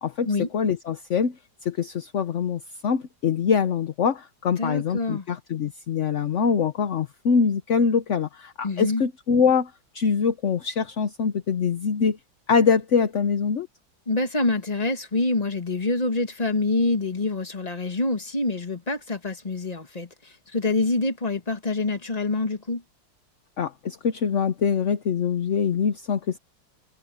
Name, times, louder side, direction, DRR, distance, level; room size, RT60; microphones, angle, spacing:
voice 1, 0.0-1.4 1.6-12.2 12.5-13.7 23.6-26.4, left 6 dB, 50° left, 0.9 m, -24 dB
voice 2, 4.6-5.3 8.6-9.0 14.1-22.8, left 2 dB, 20° left, 1.8 m, -26 dB
omnidirectional pair, 2.2 m